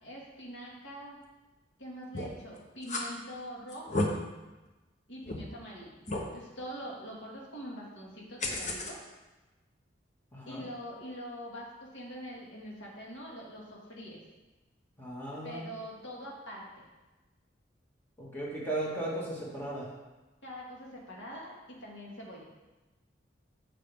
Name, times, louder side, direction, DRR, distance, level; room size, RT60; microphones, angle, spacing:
voice 1, 0.0-1.2 1.8-4.1 5.1-6.0 6.3-9.0 10.5-14.2 15.4-16.8 20.4-22.4, equal, 75° left, -3 dB, 2.2 m, -44 dB
sound 1, 2.1-2.4 2.8-3.0 3.7-4.1 4.7-4.8 5.2-5.4 6.1-6.3 8.4-8.9, left 2 dB, 40° left, 1.0 m, -32 dB
voice 2, 10.3-10.6 15.0-15.6 18.2-19.9, right 1 dB, 10° left, -6 dB, 2.3 m, -36 dB
8.9 x 6.6 x 3.6 m, 1.1 s
head